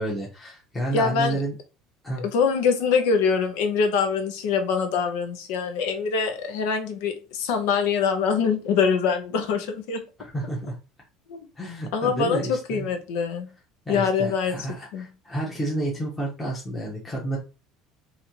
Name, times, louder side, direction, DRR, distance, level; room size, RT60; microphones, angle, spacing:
voice 1, 0.0-1.5 2.0-2.2 10.2-10.7 11.6-12.9 13.9-17.4, right 1 dB, 10° left, 1.0 m, -30 dB
voice 2, 0.9-1.4 2.2-10.0 11.3-11.5 11.9-13.5 13.9-14.7 14.9-15.1, left 5 dB, 80° left, 0.9 m, -24 dB
4.2 x 2.8 x 2.9 m
cardioid pair, 145°, 0 cm